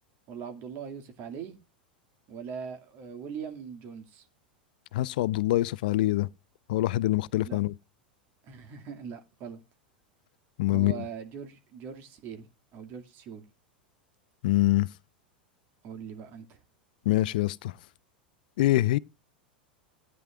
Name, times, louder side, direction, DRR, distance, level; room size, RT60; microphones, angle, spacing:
voice 1, 0.3-1.6 2.3-4.3 7.4-7.6 8.5-9.6 10.7-12.5 12.7-13.4 15.8-16.6, right 7 dB, 50° right, 2.2 m, -41 dB
voice 2, 4.9-6.3 6.7-7.7 10.6-11.0 14.4-14.9 17.1-17.7 18.6-19.0, left 16 dB, 65° left, 0.5 m, -25 dB
17.0 x 9.6 x 2.4 m
hypercardioid pair, 95°, 5 cm